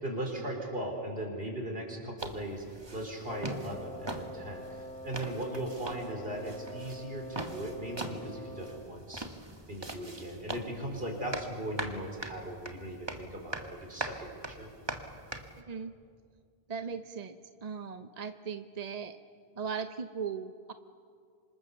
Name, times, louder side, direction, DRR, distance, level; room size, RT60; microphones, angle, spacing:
voice 1, 0.0-2.6 2.9-9.3 9.7-14.7, right 1 dB, 65° right, 2 dB, 4.6 m, -38 dB
sound 1, 2.2-15.6, right 1 dB, 25° right, 1.6 m, -42 dB
Wind instrument woodwind instrument, 3.3-9.0, equal, 5° left, 2.1 m, -45 dB
voice 2, 16.7-19.2 19.6-20.7, right 6 dB, 45° right, 9 dB, 0.8 m, -38 dB
26.5 x 26.0 x 7.1 m, 2.2 s
omnidirectional pair, 1.1 m